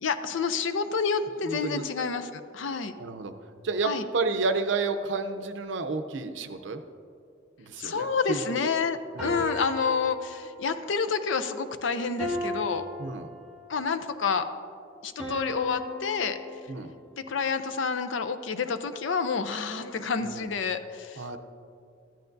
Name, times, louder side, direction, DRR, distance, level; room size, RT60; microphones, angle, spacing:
voice 1, 0.0-2.9 3.8-4.0 7.8-12.8 13.7-14.5 15.0-16.4 17.2-21.2, left 5 dB, 80° left, 10 dB, 0.5 m, -29 dB
voice 2, 1.4-1.8 3.0-3.3 3.6-6.8 7.6-8.6 9.1-9.4 13.0-13.3 16.7-16.9 20.2-20.5 21.2-21.4, right 3 dB, 70° right, 8 dB, 0.6 m, -31 dB
sound 1, 9.2-10.8 12.2-13.9 15.2-17.1, left 1 dB, 5° right, 2.4 m, -36 dB
14.0 x 10.5 x 2.6 m, 2.5 s
head